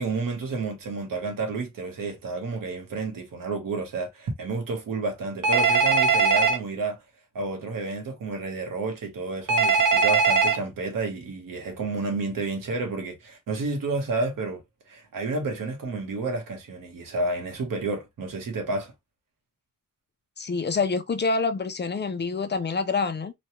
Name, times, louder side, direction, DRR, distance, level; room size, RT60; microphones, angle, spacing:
voice 1, 0.0-7.0 7.3-14.6 14.9-18.9, right 3 dB, 90° right, 1.1 m, -30 dB
Telephone, 5.4-6.6 9.5-10.6, right 4 dB, 75° right, 0.8 m, -20 dB
voice 2, 20.4-23.3, left 4 dB, 35° left, 0.5 m, -26 dB
3.1 x 2.3 x 2.8 m
wide cardioid pair, 100°, 32 cm